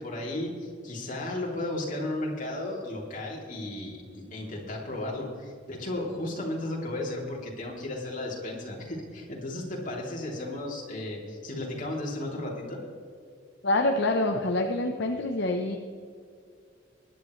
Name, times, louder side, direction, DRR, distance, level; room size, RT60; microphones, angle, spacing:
voice 1, 0.0-12.8, left 1 dB, 45° left, -2 dB, 3.3 m, -34 dB
voice 2, 13.6-15.8, left 2 dB, 65° left, 3 dB, 1.0 m, -26 dB
22.0 x 10.5 x 3.3 m, 2.3 s
head